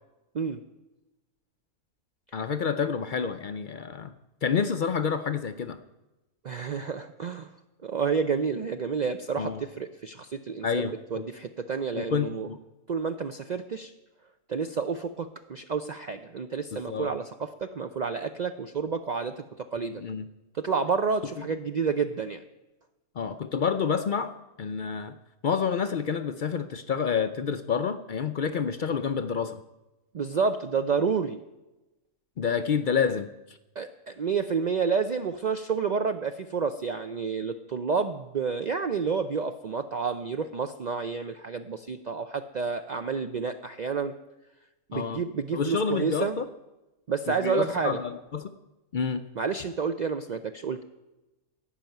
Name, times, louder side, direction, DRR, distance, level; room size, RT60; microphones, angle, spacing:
voice 1, 2.3-4.1 4.4-5.8 9.4-9.6 10.6-11.3 11.9-12.6 16.7-17.1 20.0-20.2 23.2-25.2 25.4-29.6 32.4-33.6 44.9-45.2 45.5-46.5 47.3-48.5 48.9-49.2, left 6 dB, 70° left, 10 dB, 0.4 m, -28 dB
voice 2, 6.4-7.5 7.8-12.5 12.9-13.9 14.5-20.0 20.5-22.4 30.1-31.4 33.8-44.2 44.9-46.4 47.1-48.0 49.4-50.8, right 5 dB, 75° right, 8 dB, 0.4 m, -29 dB
16.0 x 5.6 x 9.1 m, 1.0 s
omnidirectional pair, 1.5 m